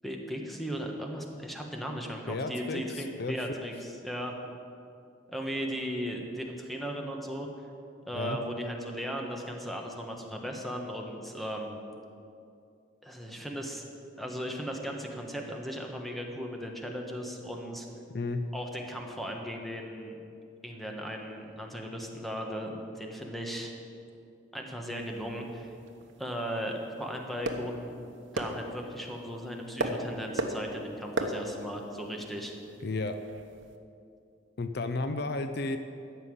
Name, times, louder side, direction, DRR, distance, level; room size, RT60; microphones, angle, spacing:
voice 1, 0.0-4.3 5.3-7.5 8.1-11.8 13.0-13.8 14.2-17.9 18.5-20.1 20.6-23.7 24.5-25.7 26.2-27.9 28.3-32.5, equal, ahead, 1 dB, 1.3 m, -37 dB
voice 2, 2.3-3.5 8.1-8.4 18.1-18.4 32.8-33.2 34.6-35.8, left 3 dB, 55° left, 8 dB, 0.6 m, -33 dB
sound 1, 24.9-33.8, right 1 dB, 75° right, 1.0 m, -38 dB
13.5 x 5.7 x 9.6 m, 2.5 s
head